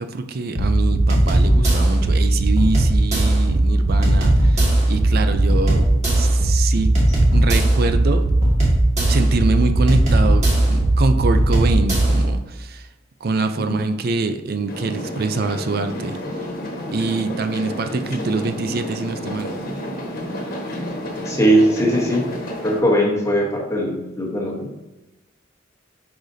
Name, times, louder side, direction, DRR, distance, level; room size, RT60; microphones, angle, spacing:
voice 1, 0.0-5.9 6.1-6.9 7.3-8.2 9.1-12.9 13.2-16.2 16.9-19.5, right 3 dB, 50° right, 8 dB, 0.4 m, -24 dB
sound 1, 0.6-12.3, right 1 dB, 35° right, 1.9 m, -17 dB
sound 2, 14.7-22.8, equal, 50° left, 1.4 m, -30 dB
voice 2, 21.3-22.2 22.6-24.7, right 1 dB, 15° left, -2 dB, 1.1 m, -19 dB
10.0 x 4.9 x 2.7 m, 0.99 s
head